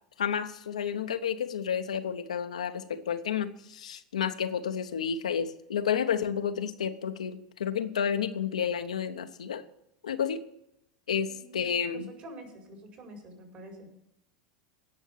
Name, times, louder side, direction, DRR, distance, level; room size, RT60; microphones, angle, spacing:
voice 1, 0.2-9.6 10.0-10.4 11.1-12.1, left 8 dB, 75° left, 8 dB, 0.8 m, -31 dB
voice 2, 11.3-13.9, right 1 dB, 45° right, 1 dB, 4.9 m, -47 dB
17.0 x 6.3 x 6.9 m, 0.80 s
figure-of-eight pair, 85°, 4 cm